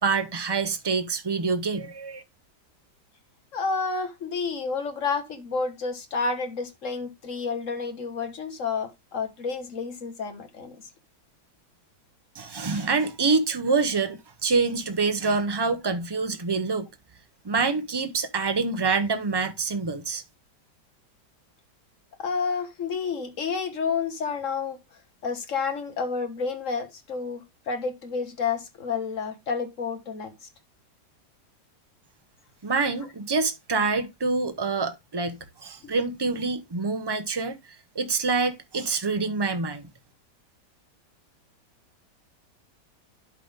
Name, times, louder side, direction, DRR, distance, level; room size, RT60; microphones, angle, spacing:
voice 1, 0.0-2.2 12.3-16.9 17.4-20.2 32.6-37.6 37.9-39.8, right 4 dB, 40° right, 0.3 m, -26 dB
voice 2, 3.5-10.8 12.7-12.8 22.2-24.8 25.2-30.3 35.8-35.9, left 5 dB, 50° left, 1.7 m, -30 dB
12.0 x 4.0 x 3.5 m
omnidirectional pair, 1.8 m